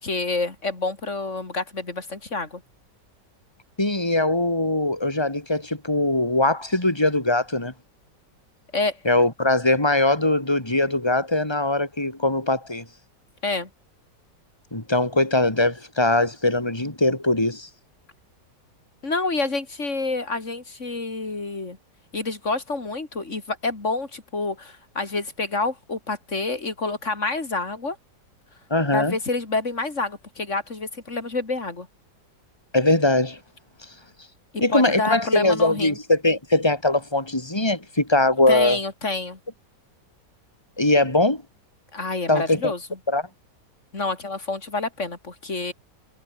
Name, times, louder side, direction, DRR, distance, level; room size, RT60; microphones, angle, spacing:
voice 1, 0.0-2.6 8.7-9.0 13.4-13.7 19.0-21.8 22.1-28.0 28.9-31.9 34.7-36.0 38.5-39.4 41.9-42.8 43.9-45.7, left 3 dB, 40° left, 3.8 m, -28 dB
voice 2, 3.8-7.7 9.0-12.8 14.7-17.7 28.7-29.2 32.7-33.4 34.6-38.8 40.8-41.4 42.3-42.7 43.1-43.2, left 2 dB, 15° left, 4.4 m, -21 dB
omnidirectional pair, 1.9 m